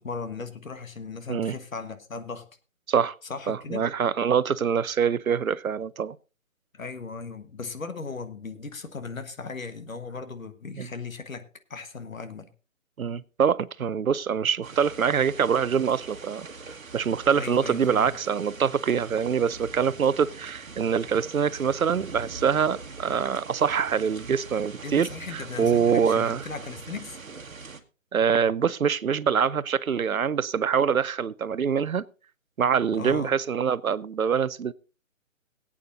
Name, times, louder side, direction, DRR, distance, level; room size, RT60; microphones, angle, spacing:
voice 1, 0.0-2.5 3.3-3.8 6.7-12.5 17.3-18.1 24.8-27.2 33.0-33.3, left 4 dB, 75° left, 1.5 m, -37 dB
voice 2, 3.5-6.2 10.8-10.9 13.0-16.5 16.9-26.4 28.1-32.0 32.6-34.7, right 7 dB, 90° right, 0.6 m, -24 dB
sound 1, 14.6-27.8, right 4 dB, 75° right, 1.4 m, -42 dB
22.0 x 8.6 x 2.6 m
figure-of-eight pair, 145°, 40 cm